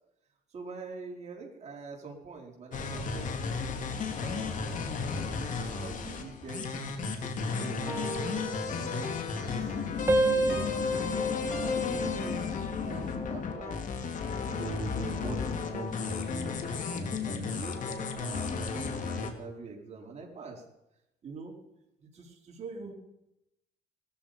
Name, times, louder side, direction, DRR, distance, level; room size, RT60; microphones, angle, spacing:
voice 1, 0.5-3.6 4.1-5.0 5.6-11.3 11.6-13.8 14.5-20.6 21.2-21.5 22.0-22.9, right 4 dB, 40° right, 0 dB, 4.7 m, -44 dB
sound 1, 2.7-19.3, left 5 dB, 50° left, 2.6 m, -33 dB
sound 2, 7.9-9.7 10.1-12.6 13.1-13.4, right 3 dB, 15° right, 2.1 m, -32 dB
19.0 x 14.0 x 5.2 m, 0.88 s
cardioid pair, 110°, 17 cm